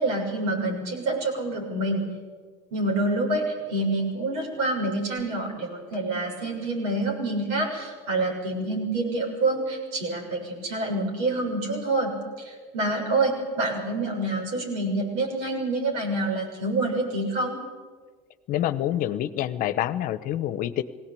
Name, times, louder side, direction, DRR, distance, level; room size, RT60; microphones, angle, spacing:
voice 1, 0.0-2.0 2.7-17.6, right 2 dB, 80° right, 0 dB, 6.9 m, -27 dB
voice 2, 18.5-20.8, left 12 dB, 55° left, 14 dB, 1.0 m, -27 dB
19.5 x 17.5 x 8.6 m, 1.5 s
supercardioid pair, 110°, 17 cm